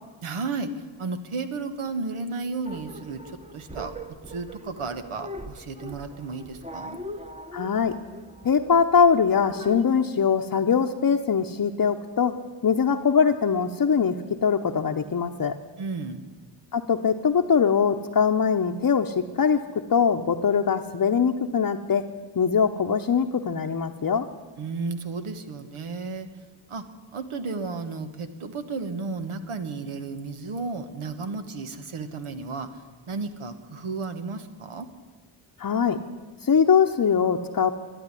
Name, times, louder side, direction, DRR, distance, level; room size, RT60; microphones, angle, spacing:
voice 1, 0.2-3.9 4.3-7.0 15.8-16.2 24.6-26.3 26.7-26.8 27.1-32.7 33.1-34.9, right 4 dB, 85° right, 9 dB, 1.3 m, -33 dB
sound 1, 2.6-9.9, equal, 15° right, 1.0 m, -41 dB
voice 2, 7.5-7.9 8.4-12.3 12.6-14.1 14.4-15.5 16.7-19.6 19.9-22.0 22.3-24.3 35.6-36.0 36.4-37.7, left 6 dB, 40° left, 2 dB, 0.8 m, -22 dB
12.5 x 10.0 x 9.8 m, 1.4 s
cardioid pair, 60°, 49 cm